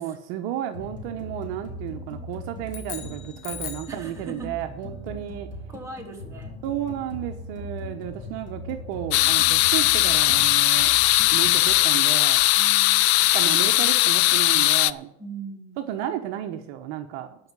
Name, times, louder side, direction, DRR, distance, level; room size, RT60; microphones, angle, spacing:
voice 1, 0.0-5.5 6.6-10.9 11.3-12.5 13.3-15.1 15.8-17.4, right 11 dB, 60° right, 6 dB, 1.1 m, -33 dB
sound 1, 0.7-11.7, left 1 dB, 25° left, 3.9 m, -39 dB
sound 2, 2.6-4.0, left 10 dB, 65° left, 1.9 m, -38 dB
voice 2, 3.9-4.5 5.7-6.6 12.5-13.5 15.2-15.8, right 3 dB, 10° right, -1 dB, 3.0 m, -40 dB
sound 3, 9.1-14.9, left 17 dB, 80° left, 0.5 m, -19 dB
12.0 x 5.9 x 8.8 m, 0.79 s
supercardioid pair, 120°, 32 cm